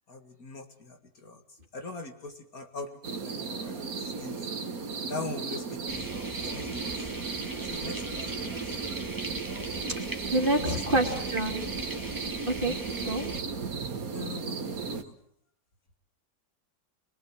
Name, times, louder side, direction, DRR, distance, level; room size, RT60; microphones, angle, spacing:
voice 1, 0.1-1.4 1.7-4.5 5.1-6.1 6.4-7.0 7.6-8.7 10.5-11.3 12.6-12.8 14.1-15.2, left 3 dB, 55° left, 5 dB, 2.5 m, -42 dB
sound 1, 3.0-15.0, right 5 dB, 55° right, 1.8 m, -35 dB
sound 2, 5.9-13.4, right 1 dB, 10° right, 2.0 m, -41 dB
voice 2, 10.3-11.7 12.5-13.3, right 1 dB, 30° right, 3 dB, 3.1 m, -27 dB
26.0 x 22.0 x 7.8 m, 0.64 s
omnidirectional pair, 1.9 m